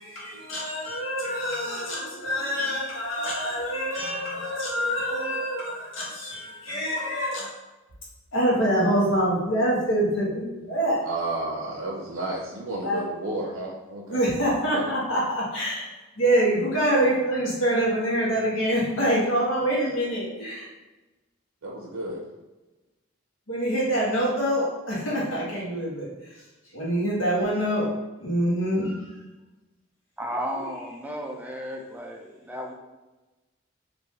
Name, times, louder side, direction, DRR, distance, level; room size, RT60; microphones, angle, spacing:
voice 1, 0.0-7.5 8.3-11.0 12.8-13.0 14.1-15.9 16.2-20.7 23.5-26.4 26.7-27.9 28.2-29.2, right 1 dB, 85° left, -5 dB, 1.1 m, -25 dB
voice 2, 11.1-14.3 14.7-14.9 21.6-22.3, right 2 dB, 90° right, -2 dB, 0.5 m, -32 dB
voice 3, 30.2-32.7, equal, 10° right, 0 dB, 0.4 m, -34 dB
3.5 x 2.6 x 3.1 m, 1.1 s
head